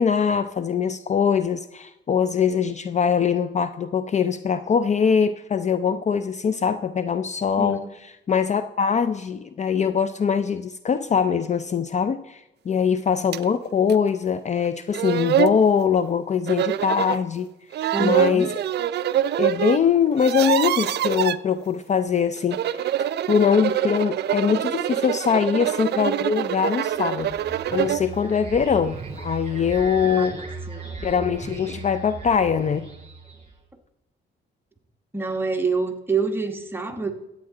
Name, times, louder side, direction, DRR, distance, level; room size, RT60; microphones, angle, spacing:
voice 1, 0.0-7.8 8.3-17.5 18.0-18.5 19.4-27.4 27.7-30.4 31.0-32.9, left 6 dB, 35° left, 12 dB, 0.4 m, -22 dB
voice 2, 7.6-7.9 17.9-18.5 30.0-30.2 30.7-30.8 35.1-37.1, right 4 dB, 10° right, 4 dB, 1.2 m, -26 dB
sound 1, 13.3-13.4 13.9-14.0 14.6-14.7 14.9-15.6 16.5-17.2 17.7-19.8 20.1-21.4 22.4-28.1, right 11 dB, 60° right, 0.4 m, -25 dB
sound 2, 27.0-33.6, right 4 dB, 30° right, 3.2 m, -37 dB
13.0 x 8.5 x 3.8 m, 0.97 s
cardioid pair, 90°, 20 cm